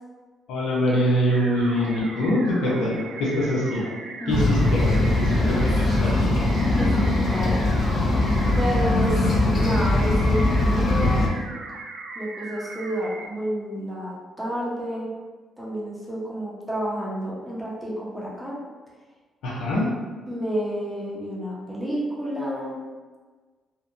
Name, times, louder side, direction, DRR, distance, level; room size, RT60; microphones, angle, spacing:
voice 1, 0.5-3.9 4.3-6.5 19.4-19.9, equal, 85° left, -5 dB, 0.7 m, -24 dB
sound 1, 1.3-13.3, right 3 dB, 80° right, 0.3 m, -38 dB
voice 2, 4.2-4.9 5.3-5.7 6.7-7.6 8.6-11.3 12.1-15.1 15.6-18.6 20.3-22.8, equal, 5° right, -6 dB, 0.7 m, -30 dB
sound 2, 4.3-11.3, left 2 dB, 50° left, 0.4 m, -21 dB
2.7 x 2.1 x 2.5 m, 1.4 s
cardioid pair, 90°, 0 cm